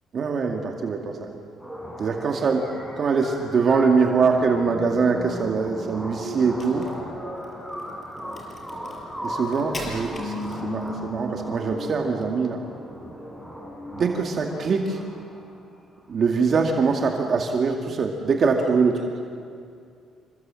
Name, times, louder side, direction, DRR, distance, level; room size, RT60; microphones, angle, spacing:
voice 1, 0.1-1.3 2.0-2.7 3.0-6.9 9.2-12.6 13.9-15.0 16.1-19.0, right 5 dB, 45° right, 2 dB, 2.3 m, -23 dB
sound 1, 1.6-15.6, equal, 5° left, 6.7 m, -36 dB
Crack, 6.5-11.0, left 1 dB, 25° left, 6.0 m, -42 dB
28.0 x 26.5 x 7.8 m, 2.3 s
cardioid pair, 130°, 0 cm